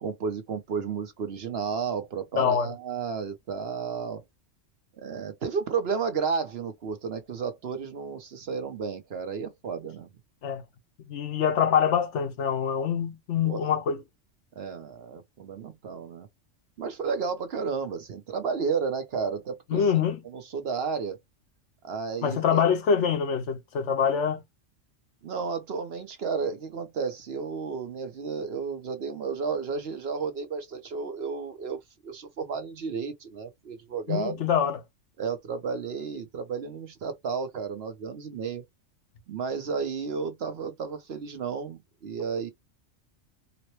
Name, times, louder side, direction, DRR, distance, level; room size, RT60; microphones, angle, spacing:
voice 1, 0.0-4.2 4.9-10.1 13.4-13.7 14.5-16.3 16.8-19.9 20.2-21.2 21.8-22.6 25.2-34.4 35.2-38.6 39.3-42.5, right 5 dB, 60° right, 0.9 m, -32 dB
voice 2, 2.4-2.7 10.4-10.6 11.1-14.0 19.7-20.2 22.2-24.4 34.1-34.8, left 7 dB, 70° left, 1.0 m, -25 dB
4.0 x 2.1 x 2.9 m
omnidirectional pair, 1.3 m